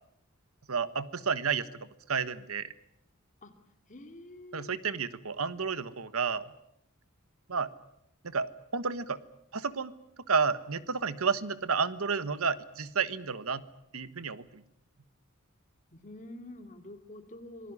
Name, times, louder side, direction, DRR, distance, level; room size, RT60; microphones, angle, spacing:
voice 1, 0.7-1.7 2.1-2.7 4.5-6.5 7.5-7.7 8.2-9.2 9.5-9.9 10.3-13.6 13.9-14.6, right 5 dB, 85° right, 15 dB, 1.3 m, -31 dB
voice 2, 3.9-4.7 15.9-17.7, left 1 dB, 35° left, 7 dB, 2.7 m, -47 dB
26.0 x 19.0 x 9.8 m, 0.78 s
head